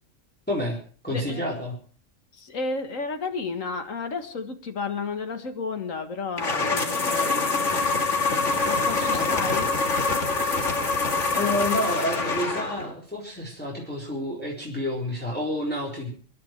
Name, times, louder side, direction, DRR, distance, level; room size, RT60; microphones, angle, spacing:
voice 1, 0.5-0.8 1.0-1.8 9.1-9.7 11.3-16.1, left 1 dB, 5° left, -4 dB, 4.2 m, -29 dB
voice 2, 1.1-1.5 2.4-7.7 8.6-9.7, left 4 dB, 85° left, 8 dB, 2.2 m, -32 dB
sound 1, 6.4-12.9, left 3 dB, 70° left, 2.5 m, -25 dB
24.5 x 11.0 x 4.6 m, 0.43 s
omnidirectional pair, 1.3 m